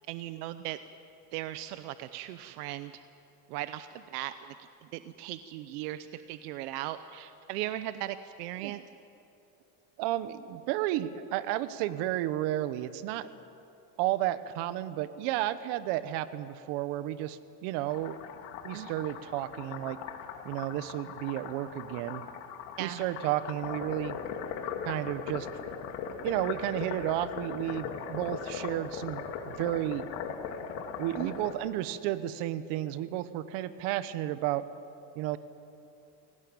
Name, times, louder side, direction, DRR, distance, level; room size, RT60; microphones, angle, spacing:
voice 1, 0.1-0.8 1.3-2.9 3.5-4.5 4.9-8.8 18.7-18.9 22.8-23.0 31.2-31.3, right 14 dB, 85° right, 12 dB, 0.9 m, -37 dB
voice 2, 10.0-13.3 14.0-18.2 18.6-20.0 20.4-22.2 22.8-24.2 24.8-25.5 26.2-30.0 31.0-34.7 35.1-35.4, right 14 dB, 70° right, 13 dB, 1.2 m, -32 dB
sound 1, 17.9-31.5, left 7 dB, 70° left, 2.5 m, -39 dB
21.0 x 18.0 x 8.8 m, 2.8 s
supercardioid pair, 125°, 45 cm